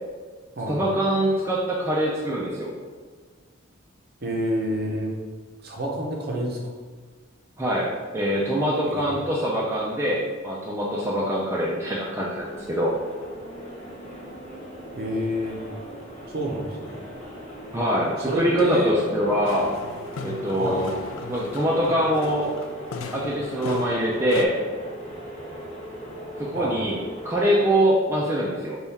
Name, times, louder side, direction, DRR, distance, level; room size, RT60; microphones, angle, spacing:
voice 1, 0.7-2.7 7.6-13.0 17.7-19.7 20.2-21.0 21.3-22.5 23.1-24.6 26.4-28.8, equal, 10° right, -5 dB, 0.3 m, -24 dB
voice 2, 4.2-5.1 5.6-6.6 9.0-9.2 15.0-15.6 16.3-17.0 18.3-18.9 20.6-20.8 26.5-26.7, equal, 45° right, -1 dB, 0.6 m, -27 dB
sound 1, 12.3-27.4, equal, 35° left, 0.9 m, -39 dB
sound 2, 19.5-24.5, left 5 dB, 80° left, 0.3 m, -38 dB
3.5 x 2.3 x 4.1 m, 1.5 s
head